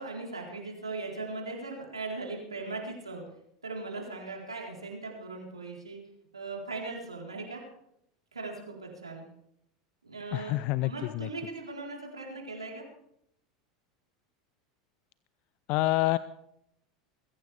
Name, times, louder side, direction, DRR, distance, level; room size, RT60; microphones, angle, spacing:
voice 1, 0.0-3.2 3.6-6.0 6.3-7.6 8.3-9.3 10.0-12.8, right 3 dB, 85° right, 0 dB, 4.1 m, -39 dB
voice 2, 10.3-11.3 15.7-16.2, left 18 dB, 50° left, 17 dB, 0.5 m, -27 dB
21.5 x 15.5 x 3.5 m, 0.76 s
figure-of-eight pair, 80°, 3 cm